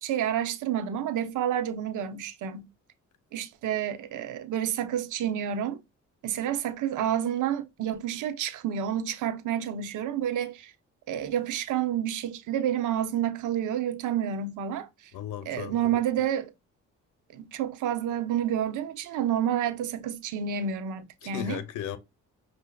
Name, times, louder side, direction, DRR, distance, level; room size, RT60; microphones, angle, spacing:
voice 1, 0.0-2.7 3.3-5.8 6.2-10.7 11.1-14.9 15.5-16.5 17.3-21.6, right 9 dB, 80° right, 0.8 m, -29 dB
voice 2, 15.1-16.0 21.2-22.0, left 10 dB, 80° left, 0.7 m, -36 dB
5.8 x 2.8 x 2.2 m
cardioid pair, 90°, 30 cm